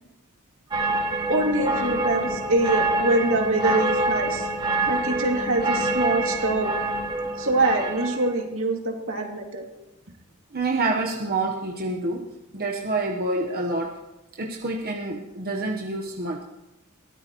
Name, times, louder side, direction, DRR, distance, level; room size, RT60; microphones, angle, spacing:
sound 1, 0.7-8.3, right 2 dB, 20° right, 2.1 m, -26 dB
voice 1, 1.3-4.5 4.9-6.7 7.4-9.7, right 2 dB, 65° right, 1 dB, 2.5 m, -24 dB
voice 2, 10.5-12.2 12.5-14.0 14.4-16.4, right 2 dB, 45° right, 1 dB, 1.1 m, -27 dB
22.0 x 16.5 x 3.1 m, 0.96 s
head